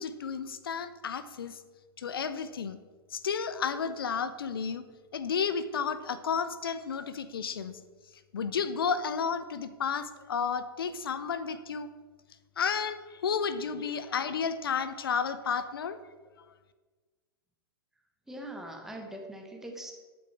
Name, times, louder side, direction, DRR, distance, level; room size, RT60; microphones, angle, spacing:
voice 1, 0.0-1.6 2.0-2.8 3.1-4.8 5.1-7.8 8.3-11.9 12.6-16.0, left 6 dB, 65° left, 12 dB, 0.9 m, -32 dB
voice 2, 18.3-19.9, right 1 dB, 5° right, 2 dB, 1.6 m, -42 dB
12.0 x 8.7 x 4.5 m, 1.4 s
figure-of-eight pair, 105°, 13 cm